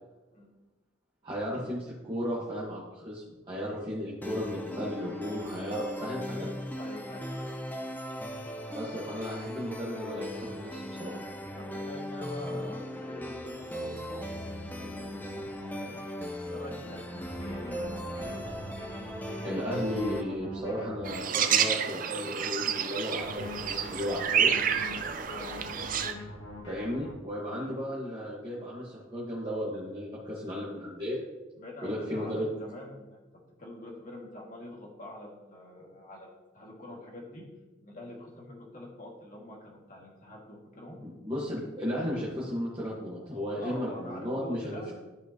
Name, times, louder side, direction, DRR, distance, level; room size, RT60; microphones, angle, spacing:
voice 1, 1.2-6.5 8.7-11.2 19.4-24.5 26.7-31.2 31.8-32.5 41.0-44.6, equal, 25° right, -8 dB, 1.5 m, -35 dB
sound 1, 4.2-20.2, equal, 10° left, 0.6 m, -38 dB
voice 2, 6.8-7.5 11.5-16.0 16.5-18.4 25.3-25.6 27.5-27.7 31.6-33.2 33.6-37.4 37.8-41.0 43.6-44.9, left 1 dB, 40° left, -2 dB, 2.0 m, -45 dB
sound 2, 17.1-21.1 23.1-27.1, left 1 dB, 75° left, 2.0 m, -42 dB
sound 3, 21.0-26.1, right 8 dB, 40° right, 0.5 m, -29 dB
13.0 x 5.1 x 3.0 m, 1.1 s
head